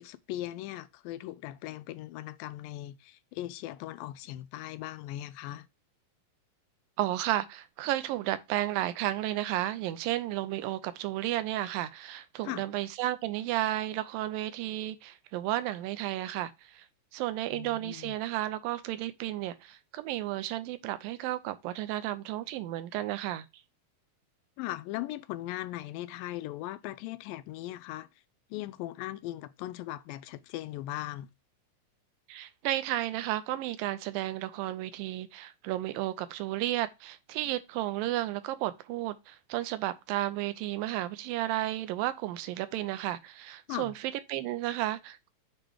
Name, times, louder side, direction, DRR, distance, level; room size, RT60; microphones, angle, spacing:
voice 1, 0.0-5.7 12.4-12.7 17.5-18.2 24.6-28.1 28.5-31.3 43.7-43.9, left 15 dB, 85° left, 2.3 m, -39 dB
voice 2, 7.0-16.9 17.1-23.5 32.3-45.3, right 14 dB, 90° right, 2.4 m, -33 dB
8.0 x 3.1 x 4.9 m
omnidirectional pair, 4.0 m